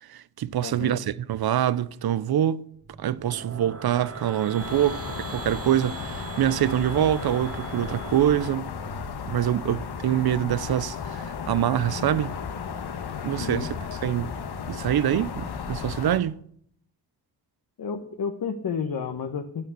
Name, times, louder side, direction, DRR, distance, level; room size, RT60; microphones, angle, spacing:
voice 1, 0.0-2.7 3.0-8.7 9.3-12.4 13.2-13.7 14.0-14.4 14.7-16.4, right 11 dB, 65° right, 0.8 m, -25 dB
voice 2, 0.6-1.0 13.4-13.7 17.8-19.7, left 6 dB, 60° left, 1.3 m, -31 dB
sound 1, 2.8-8.5, right 5 dB, 35° right, 1.3 m, -40 dB
sound 2, 4.6-16.2, left 6 dB, 75° left, 1.5 m, -34 dB
12.0 x 9.3 x 9.5 m
cardioid pair, 85°, 39 cm